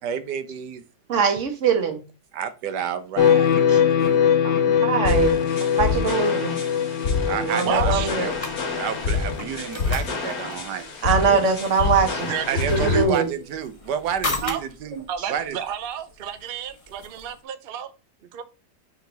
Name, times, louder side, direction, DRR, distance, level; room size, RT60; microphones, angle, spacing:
voice 1, 0.0-0.8 2.3-4.2 7.2-8.4 8.7-10.9 11.2-11.4 12.5-15.6, right 8 dB, 80° right, 1.3 m, -30 dB
voice 2, 1.1-2.0 3.7-3.8 4.4-4.5 4.8-5.3 5.8-6.6 7.3-8.3 11.0-12.3 12.7-13.3, right 5 dB, 50° right, 1.5 m, -22 dB
sound 1, 3.2-9.8, left 8 dB, 80° left, 1.4 m, -22 dB
sound 2, 5.0-13.0, left 4 dB, 60° left, 1.9 m, -28 dB
voice 3, 7.6-8.2 12.2-13.0 14.4-14.6 15.1-17.9 18.3-18.4, right 8 dB, 65° right, 0.5 m, -31 dB
sound 3, 7.7-17.4, left 2 dB, 25° left, 1.0 m, -38 dB
5.7 x 4.6 x 3.9 m
omnidirectional pair, 1.8 m